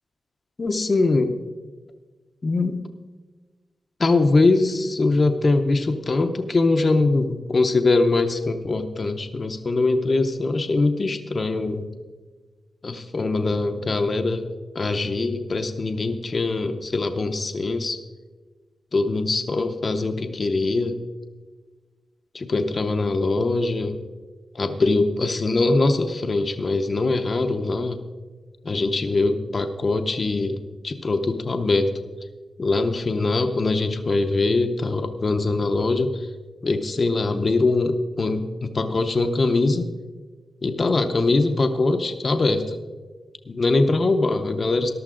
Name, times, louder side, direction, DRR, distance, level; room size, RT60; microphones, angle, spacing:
voice 1, 0.6-1.4 2.4-2.8 4.0-11.9 12.8-14.5 14.7-18.0 18.9-21.0 22.3-24.0 24.5-28.0 28.6-30.6 30.8-31.9 32.6-36.3 36.6-39.9 40.6-42.8 43.5-44.9, left 3 dB, 30° left, 7 dB, 0.6 m, -22 dB
13.5 x 12.0 x 3.7 m, 1.3 s
wide cardioid pair, 180°, 0 cm